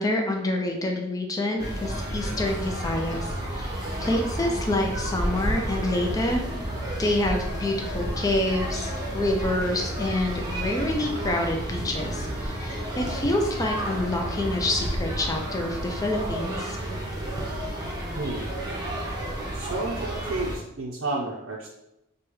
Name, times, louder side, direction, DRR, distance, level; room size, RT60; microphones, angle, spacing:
voice 1, 0.0-3.7 4.0-6.4 7.0-16.8, left 1 dB, 15° left, 1 dB, 0.4 m, -27 dB
sound 1, 1.6-20.6, right 1 dB, 20° right, 0.8 m, -31 dB
voice 2, 18.2-18.5 19.5-21.7, right 2 dB, 75° right, -3 dB, 0.5 m, -31 dB
5.0 x 2.2 x 3.0 m, 0.86 s
head